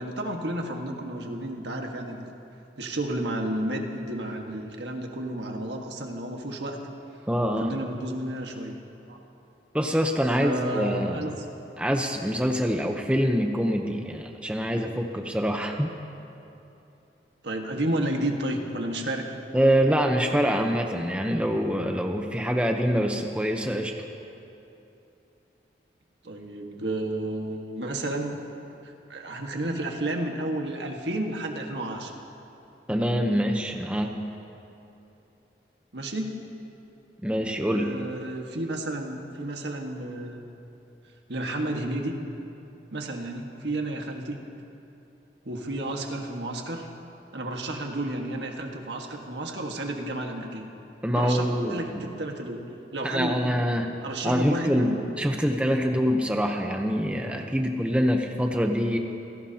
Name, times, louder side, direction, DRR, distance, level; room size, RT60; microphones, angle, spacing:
voice 1, 0.0-2.3 2.8-6.8 7.6-8.8 9.1-9.2 10.4-11.3 17.4-19.3 26.2-28.4 28.8-32.1 35.9-36.4 37.7-40.6 41.3-42.2 42.9-44.4 45.4-46.9 47.3-50.7 51.1-51.4 51.7-52.6 52.9-53.5 54.0-55.0, right 1 dB, 80° right, 2 dB, 1.6 m, -31 dB
voice 2, 7.3-7.7 9.7-11.3 11.8-15.9 19.5-23.9 32.9-34.2 37.2-37.9 51.0-52.0 53.0-53.9 54.2-59.0, equal, 5° right, 2 dB, 0.8 m, -25 dB
28.0 x 17.5 x 2.9 m, 2.9 s
head